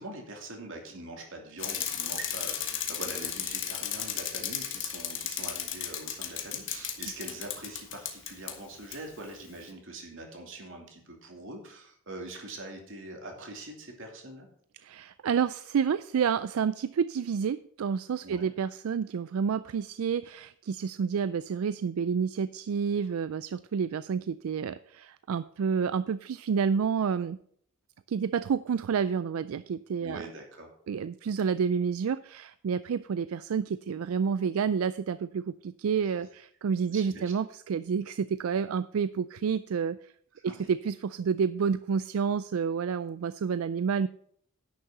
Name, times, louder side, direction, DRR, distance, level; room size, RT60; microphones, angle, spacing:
voice 1, 0.0-14.5 18.2-18.5 30.0-30.7 36.9-37.3 40.3-40.5, right 2 dB, 60° right, 2 dB, 2.7 m, -43 dB
Bicycle, 1.6-8.5 8.9-9.0, left 9 dB, 60° left, 1.6 m, -34 dB
voice 2, 14.8-27.4 28.1-30.2 30.9-40.1 40.4-44.1, right 6 dB, 85° right, 15 dB, 0.4 m, -29 dB
10.5 x 6.5 x 6.0 m, 0.63 s
head